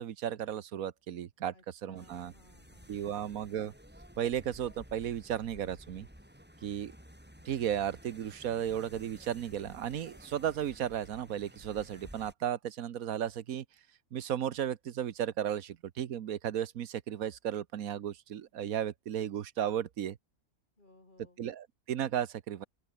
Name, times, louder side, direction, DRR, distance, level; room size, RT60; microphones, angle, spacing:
voice 1, 0.0-2.3 2.9-3.7 4.2-6.1 6.6-6.9 7.4-13.6 14.1-20.2 21.4-22.6, right 10 dB, 85° right, 1.4 m, -34 dB
voice 2, 1.5-3.2 20.8-21.4, left 2 dB, 35° left, 3.2 m, -62 dB
sound 1, 2.0-12.3, equal, 5° right, 6.7 m, -54 dB
open air
omnidirectional pair, 1.4 m